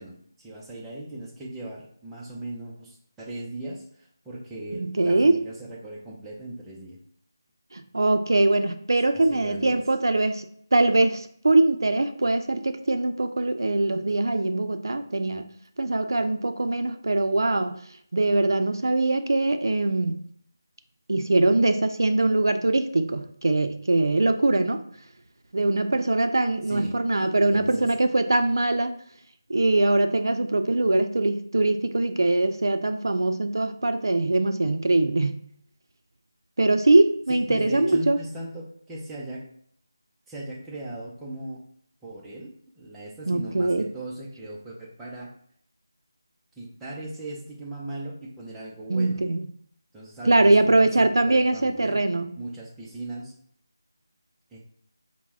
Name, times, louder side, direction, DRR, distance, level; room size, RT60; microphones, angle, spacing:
voice 1, 0.0-7.0 9.1-9.8 26.7-26.9 27.4-27.9 37.3-39.5 40.3-41.6 42.0-45.3 46.6-49.2 49.9-52.0 52.3-53.3 54.5-54.6, right 1 dB, 5° right, -6 dB, 0.4 m, -38 dB
voice 2, 4.7-5.4 7.7-10.5 10.7-17.8 18.1-20.2 21.1-24.8 25.5-29.0 29.5-35.4 36.6-38.2 43.3-43.9 48.9-49.4 50.2-52.3, right 2 dB, 75° right, 8 dB, 0.4 m, -22 dB
4.0 x 2.0 x 3.4 m, 0.64 s
figure-of-eight pair, 170°, 2 cm